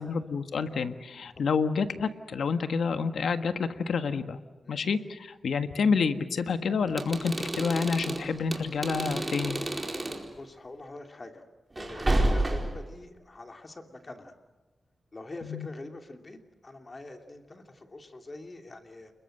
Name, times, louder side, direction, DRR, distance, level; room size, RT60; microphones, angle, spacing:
voice 1, 0.0-4.4 4.7-9.6 15.4-15.7, left 5 dB, 80° left, 9 dB, 1.5 m, -28 dB
sound 1, 6.9-10.3 11.8-12.9, right 1 dB, 20° right, 4.5 m, -30 dB
voice 2, 10.0-11.4 11.8-14.3 15.1-19.1, left 2 dB, 35° left, 5 dB, 2.7 m, -45 dB
30.0 x 22.0 x 7.8 m, 1.2 s
wide cardioid pair, 95°, 0 cm